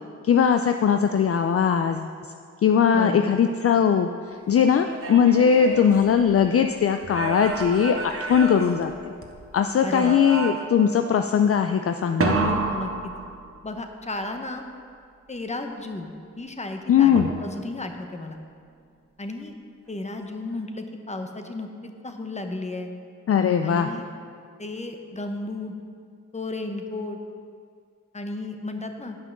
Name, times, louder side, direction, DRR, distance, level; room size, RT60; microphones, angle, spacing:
voice 1, 0.2-2.1 2.6-4.1 4.5-8.9 9.5-12.6 16.9-17.3 23.3-23.9, left 7 dB, 50° left, 7 dB, 0.4 m, -20 dB
voice 2, 2.9-3.4 9.8-10.2 12.4-13.1 13.6-14.6 15.3-18.4 19.2-19.5 19.9-22.9 23.6-24.1 24.6-25.7 26.3-27.2 28.1-29.2, left 2 dB, 25° left, 5 dB, 1.0 m, -34 dB
sound 1, 4.7-6.6 7.0-9.5 9.9-10.9 12.2-13.8 17.2-17.8, right 3 dB, 50° right, 1.0 m, -30 dB
9.4 x 5.7 x 6.0 m, 2.2 s
cardioid pair, 55°, 29 cm